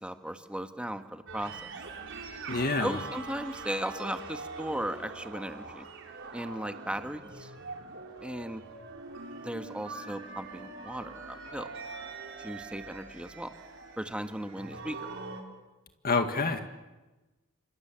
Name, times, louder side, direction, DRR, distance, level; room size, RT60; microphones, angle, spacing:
voice 1, 0.0-1.7 2.8-5.9 6.3-7.5 8.2-8.6 9.4-11.7 12.4-13.5 14.0-15.0, right 1 dB, 5° right, 7 dB, 1.6 m, -36 dB
sound 1, 1.3-15.4, right 3 dB, 60° right, 4.6 m, -43 dB
voice 2, 2.5-3.0 16.0-16.6, left 3 dB, 45° left, 7 dB, 1.9 m, -27 dB
29.0 x 26.5 x 7.6 m, 1.1 s
head